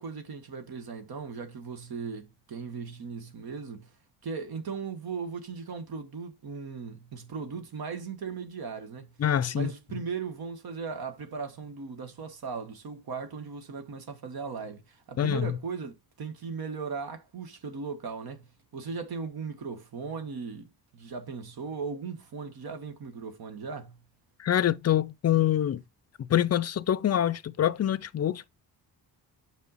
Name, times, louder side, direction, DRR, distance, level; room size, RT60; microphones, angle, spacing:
voice 1, 0.0-3.9 4.2-9.1 9.5-18.5 18.7-24.0, right 5 dB, 55° right, 1.2 m, -38 dB
voice 2, 9.2-9.7 15.2-15.6 24.4-25.8 26.2-28.5, left 11 dB, 35° left, 0.5 m, -25 dB
5.3 x 5.2 x 4.0 m
cardioid pair, 75°, 43 cm